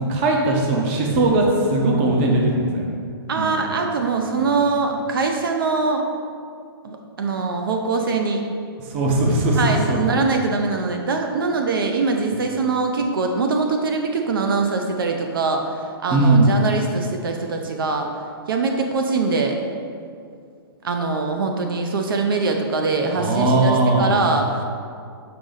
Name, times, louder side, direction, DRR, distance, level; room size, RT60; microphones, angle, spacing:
voice 1, 0.0-2.9 3.4-3.5 4.3-4.5 8.9-10.0 16.1-16.5 23.2-24.2, right 2 dB, 25° right, 0 dB, 0.7 m, -19 dB
voice 2, 3.3-6.0 6.8-8.4 9.6-18.1 18.5-19.6 20.8-24.6, right 4 dB, 60° right, 3 dB, 0.6 m, -23 dB
6.7 x 3.7 x 4.0 m, 2.3 s
hypercardioid pair, 165°, 13 cm